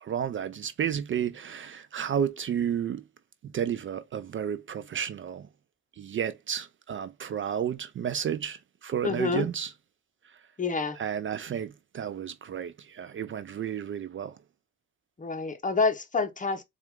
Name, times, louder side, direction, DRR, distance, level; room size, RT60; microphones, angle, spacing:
voice 1, 0.0-3.0 3.4-5.5 6.0-9.7 10.3-10.4 10.9-14.4, right 8 dB, 40° right, 0.4 m, -32 dB
voice 2, 9.0-9.5 10.6-11.0 15.2-16.6, left 4 dB, 25° left, 0.9 m, -28 dB
4.2 x 2.4 x 3.5 m
cardioid pair, 90°, 30 cm